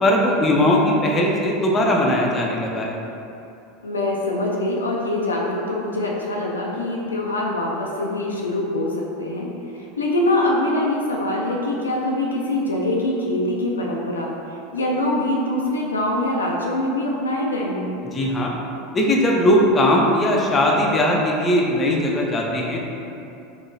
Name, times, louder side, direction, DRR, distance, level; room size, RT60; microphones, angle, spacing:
voice 1, 0.0-3.0 18.1-18.5 18.9-22.8, left 1 dB, 25° left, -1 dB, 0.5 m, -19 dB
voice 2, 3.8-9.5 9.7-14.3 14.7-17.9, left 1 dB, 80° left, -2 dB, 0.4 m, -24 dB
3.8 x 2.9 x 2.6 m, 2.7 s
figure-of-eight pair, 80°, 0 cm